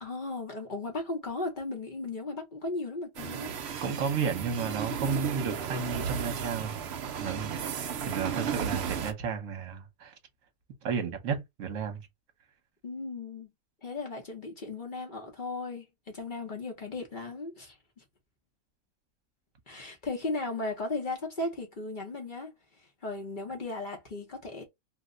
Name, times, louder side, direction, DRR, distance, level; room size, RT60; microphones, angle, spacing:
voice 1, 0.0-3.5 12.8-13.5 13.8-18.0 19.7-22.5 22.8-24.6, left 2 dB, 45° left, 0.7 m, -36 dB
sound 1, 3.1-9.1, right 8 dB, 75° right, 0.6 m, -34 dB
voice 2, 3.8-6.8 7.2-10.1 10.8-12.0, right 5 dB, 60° right, 1.2 m, -33 dB
2.8 x 2.1 x 3.6 m
omnidirectional pair, 1.7 m